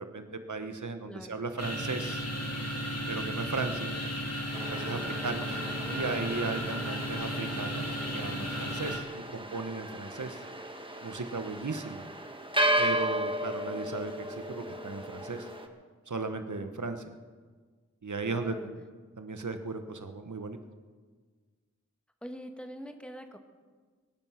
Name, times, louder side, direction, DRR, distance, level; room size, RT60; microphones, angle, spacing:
voice 1, 0.0-2.2 3.1-3.9 4.7-10.4 11.0-12.0 12.8-15.5 16.1-17.1 18.0-18.8 19.2-20.6, right 3 dB, 80° right, 7 dB, 1.2 m, -36 dB
voice 2, 1.1-1.4 18.2-18.7 22.2-23.4, equal, 5° left, 5 dB, 1.6 m, -44 dB
sound 1, 1.6-9.0, equal, 55° left, 2.5 m, -34 dB
sound 2, 4.5-15.7, right 1 dB, 15° right, 1.5 m, -35 dB
23.5 x 9.4 x 5.8 m, 1.5 s
wide cardioid pair, 50°, 29 cm